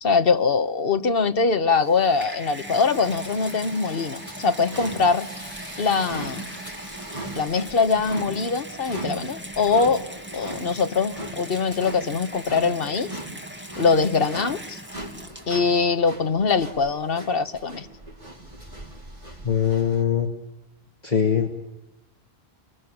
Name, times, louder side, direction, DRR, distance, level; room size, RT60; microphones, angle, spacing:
voice 1, 0.0-5.3 5.8-6.5 7.3-10.1 10.3-13.1 13.8-14.8 15.5-17.9, left 4 dB, 65° left, 9 dB, 1.4 m, -22 dB
Water tap faucet / Bathtub (filling or washing), 1.7-15.8 16.6-16.7, right 1 dB, 10° right, 2.5 m, -40 dB
sound 1, 1.8-20.0, right 1 dB, 40° right, 5.7 m, -40 dB
voice 2, 19.4-20.3 21.0-21.5, left 8 dB, 45° left, 0 dB, 2.4 m, -21 dB
28.5 x 23.5 x 8.9 m, 1.0 s
omnidirectional pair, 1.0 m